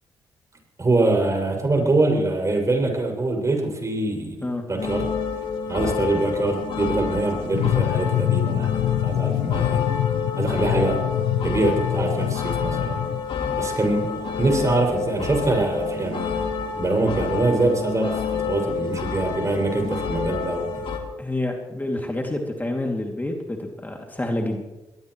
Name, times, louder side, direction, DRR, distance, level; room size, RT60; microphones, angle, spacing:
voice 1, 0.8-4.4 4.7-5.1 5.7-9.8 10.3-11.0 11.4-13.0 13.6-21.0, right 2 dB, 30° right, 2 dB, 6.6 m, -24 dB
sound 1, 4.8-21.0, left 5 dB, 60° left, 2.7 m, -29 dB
sound 2, 7.5-13.2, left 13 dB, 80° left, 0.7 m, -25 dB
voice 2, 21.2-24.6, left 1 dB, 20° left, 1 dB, 2.7 m, -28 dB
23.0 x 19.0 x 3.2 m, 1.1 s
hypercardioid pair, 50°, 10 cm